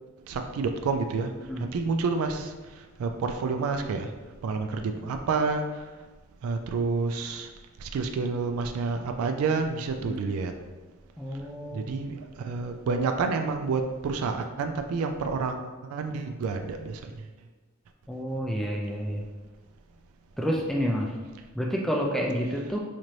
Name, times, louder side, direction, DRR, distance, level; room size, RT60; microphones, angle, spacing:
voice 1, 0.3-1.3 1.6-4.1 4.4-5.9 6.4-7.5 7.8-10.5 11.7-17.3, right 4 dB, 85° right, 5 dB, 0.3 m, -29 dB
voice 2, 11.2-11.9 18.1-19.2 20.4-21.1 21.5-22.8, equal, ahead, -2 dB, 0.3 m, -29 dB
4.2 x 2.6 x 3.1 m, 1.3 s
head